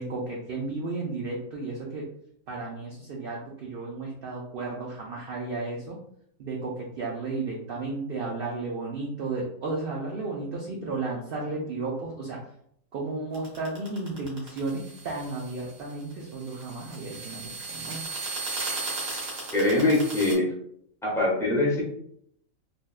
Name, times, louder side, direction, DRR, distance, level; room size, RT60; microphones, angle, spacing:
voice 1, 0.0-2.1 2.5-6.0 6.4-12.4 12.9-18.1, right 3 dB, 60° right, -3 dB, 0.6 m, -33 dB
sound 1, 13.3-20.3, right 3 dB, 80° right, 1.4 m, -36 dB
voice 2, 19.5-20.5 21.0-21.8, left 2 dB, 5° left, -5 dB, 0.5 m, -23 dB
3.4 x 2.2 x 2.3 m, 0.70 s
omnidirectional pair, 1.4 m